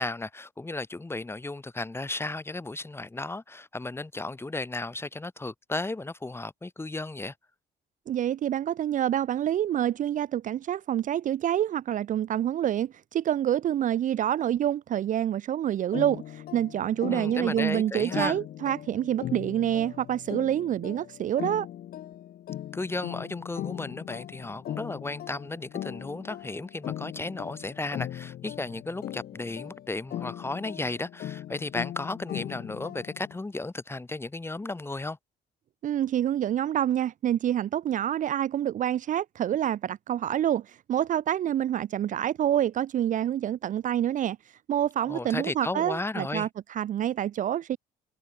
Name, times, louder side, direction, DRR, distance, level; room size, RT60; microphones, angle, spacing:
voice 1, 0.0-7.3 17.1-18.4 22.7-35.2 45.1-46.5, left 2 dB, 15° left, 6.5 m, -34 dB
voice 2, 8.1-21.7 35.8-44.4 44.7-47.8, right 11 dB, 50° right, 0.7 m, -27 dB
sound 1, 15.9-33.4, left 12 dB, 60° left, 5.3 m, -39 dB
cardioid pair, 110°, 17 cm